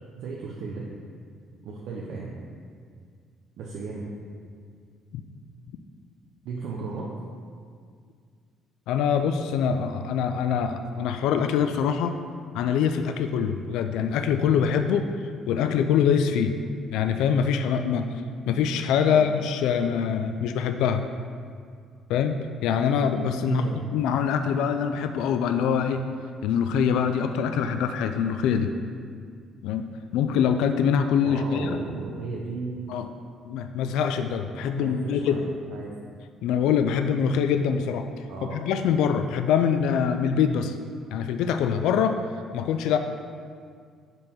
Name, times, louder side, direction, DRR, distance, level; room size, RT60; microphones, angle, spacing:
voice 1, 0.2-0.9 1.6-2.3 3.6-4.0 6.4-7.1 19.1-19.3 23.4-23.8 31.2-32.8 34.8-35.4 35.7-35.9 38.3-38.6, right 4 dB, 65° right, -3 dB, 0.6 m, -34 dB
voice 2, 8.9-12.2 12.5-15.1 15.5-16.5 16.9-18.1 18.5-21.1 22.1-23.6 23.9-26.0 26.4-28.7 29.6-29.8 30.1-31.8 32.9-33.1 33.4-35.4 36.4-38.1 38.5-40.7 41.1-42.2 42.5-43.0, left 7 dB, 85° left, 7 dB, 0.3 m, -24 dB
5.4 x 4.5 x 5.5 m, 2.1 s
cardioid pair, 165°, 0 cm